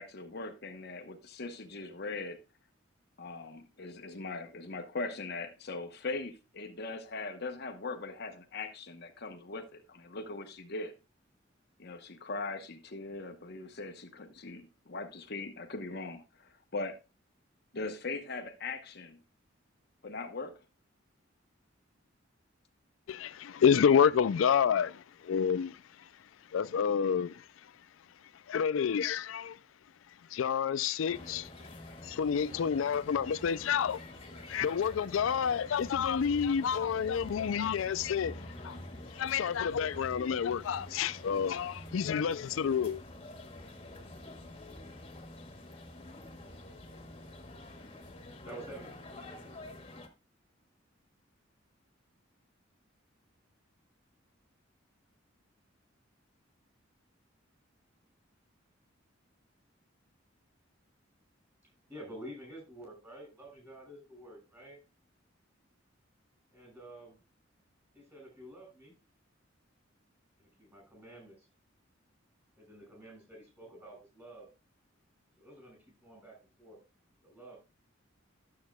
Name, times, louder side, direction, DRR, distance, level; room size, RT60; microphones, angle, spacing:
voice 1, 0.0-2.4 3.2-10.9 11.8-17.0 17.7-19.2 20.0-20.5, left 3 dB, 55° left, 1.0 m, -40 dB
voice 2, 23.1-25.8 26.5-27.4 28.5-29.6 30.3-31.5 32.0-34.0 34.5-38.8 39.1-43.0, left 7 dB, 85° left, 0.4 m, -29 dB
sound 1, 31.1-50.1, left 1 dB, 30° left, 1.7 m, -47 dB
voice 3, 48.4-49.7 61.9-64.8 66.5-67.1 67.9-69.0 70.4-71.5 72.6-74.5 75.4-76.8 77.2-77.6, right 1 dB, 15° right, 5.8 m, -50 dB
12.5 x 7.7 x 2.3 m
head